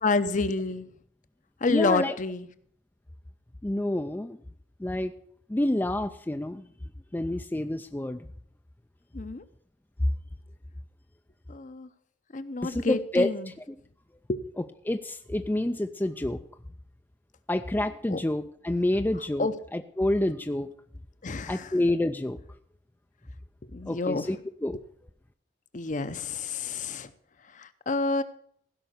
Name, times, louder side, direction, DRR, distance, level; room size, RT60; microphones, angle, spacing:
voice 1, 0.0-0.9 1.6-2.5 9.1-9.4 11.5-11.9 12.3-13.5 14.3-14.4 18.1-18.2 19.4-19.5 21.2-21.7 23.7-24.3 25.7-27.1 27.5-28.2, left 3 dB, 45° left, 12 dB, 0.7 m, -28 dB
voice 2, 1.7-2.1 3.6-4.4 4.8-5.1 5.5-6.7 7.1-8.3 12.6-13.3 13.7-13.8 14.8-16.4 17.5-20.7 21.5-22.4 23.9-24.8, left 1 dB, 10° left, 7 dB, 0.4 m, -28 dB
16.0 x 5.7 x 6.5 m, 0.64 s
head